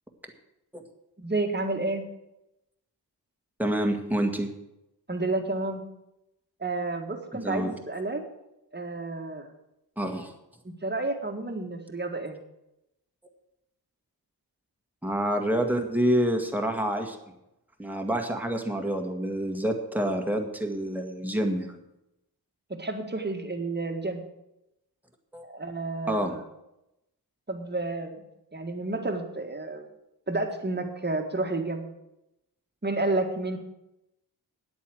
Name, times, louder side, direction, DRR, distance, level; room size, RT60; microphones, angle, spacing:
voice 1, 1.2-2.0 5.1-5.9 6.6-8.3 8.7-9.5 10.6-12.4 22.7-24.2 25.4-26.4 27.5-28.2 28.5-29.9 30.3-31.8 32.8-33.6, right 2 dB, 25° right, 4 dB, 1.8 m, -30 dB
voice 2, 3.6-4.5 7.4-7.7 10.0-10.3 15.0-17.2 17.8-21.8 25.3-25.4 26.1-26.4, right 1 dB, 5° right, 3 dB, 1.9 m, -27 dB
9.8 x 8.4 x 7.8 m, 0.88 s
wide cardioid pair, 80°, 41 cm